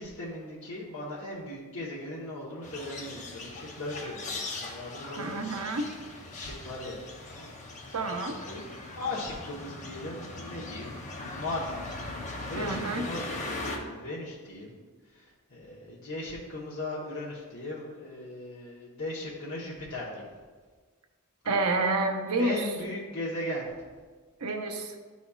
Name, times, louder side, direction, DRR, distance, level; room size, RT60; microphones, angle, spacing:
voice 1, 0.0-5.8 6.1-7.5 7.8-8.0 8.3-8.6 9.0-14.8 15.1-20.2 22.4-23.7, left 1 dB, 60° left, -6 dB, 1.1 m, -38 dB
sound 1, 2.6-13.8, left 2 dB, 35° left, 0.8 m, -40 dB
voice 2, 5.2-5.9 7.9-8.4 12.6-13.0 21.5-22.6 24.4-24.9, right 2 dB, 75° right, 4 dB, 0.7 m, -29 dB
11.0 x 4.1 x 2.4 m, 1.5 s
head